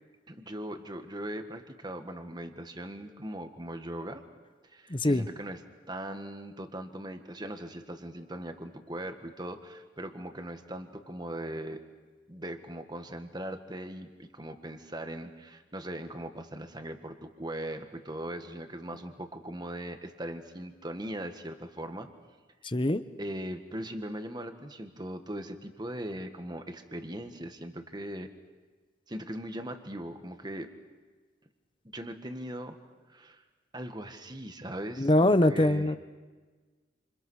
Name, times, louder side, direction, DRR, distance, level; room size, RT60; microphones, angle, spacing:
voice 1, 0.3-4.2 4.6-5.6 5.9-11.8 12.3-22.1 23.2-28.3 29.1-30.7 31.9-32.8 33.1-33.4 33.7-35.9, right 1 dB, 20° right, 7 dB, 1.7 m, -39 dB
voice 2, 4.9-5.3 22.6-23.0 35.0-36.0, left 1 dB, 25° left, 12 dB, 1.0 m, -23 dB
28.5 x 27.5 x 6.4 m, 1.4 s
head